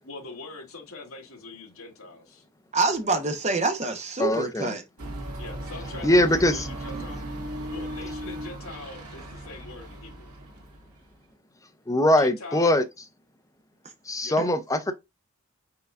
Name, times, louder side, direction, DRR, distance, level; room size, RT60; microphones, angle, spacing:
voice 1, 0.1-2.4 5.4-7.2 7.7-10.3 12.2-12.7 14.2-14.4, left 3 dB, 65° left, 1.8 m, -42 dB
voice 2, 2.7-4.8, right 3 dB, 30° right, 0.9 m, -26 dB
voice 3, 4.2-4.7 6.0-6.6 11.9-12.8 14.1-14.9, left 1 dB, 15° left, 0.6 m, -22 dB
sound 1, 5.0-11.1, right 1 dB, 85° right, 1.7 m, -37 dB
5.7 x 3.8 x 2.5 m
head